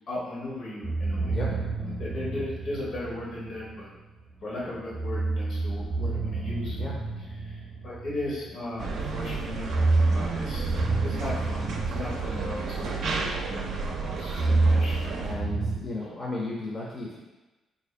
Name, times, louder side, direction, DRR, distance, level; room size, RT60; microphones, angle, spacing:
voice 1, 0.1-1.4 1.8-3.9 4.4-6.8 7.4-9.7 10.1-10.7 11.0-15.1, left 1 dB, 70° left, -5 dB, 1.2 m, -37 dB
sound 1, 0.8-3.7 4.9-8.8 9.5-13.5 13.8-15.8, right 3 dB, 25° right, 0.7 m, -28 dB
voice 2, 1.3-1.6 6.7-7.0 15.2-17.2, left 2 dB, 30° left, -4 dB, 0.6 m, -34 dB
sound 2, 8.8-15.3, right 4 dB, 65° right, 0.5 m, -32 dB
3.3 x 2.7 x 3.2 m, 1.1 s
cardioid pair, 90°, 0 cm